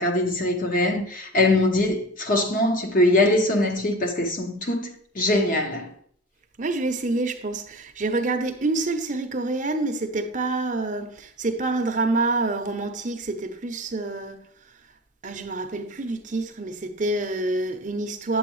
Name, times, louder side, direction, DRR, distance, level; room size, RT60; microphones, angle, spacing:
voice 1, 0.0-5.9, left 1 dB, 40° left, 0.9 m, -22 dB
voice 2, 6.6-14.4 15.2-18.4, right 2 dB, 40° right, 0.6 m, -27 dB
8.9 x 7.7 x 3.1 m
head